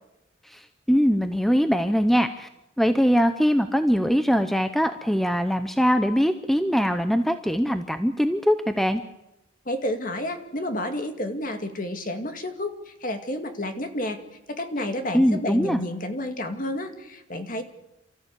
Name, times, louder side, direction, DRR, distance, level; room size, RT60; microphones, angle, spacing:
voice 1, 0.9-2.5 2.8-9.0 15.1-15.8, equal, ahead, 9 dB, 0.7 m, -22 dB
voice 2, 9.7-14.2 14.5-17.6, left 1 dB, 40° left, 6 dB, 2.2 m, -30 dB
29.0 x 14.0 x 8.3 m, 0.91 s
head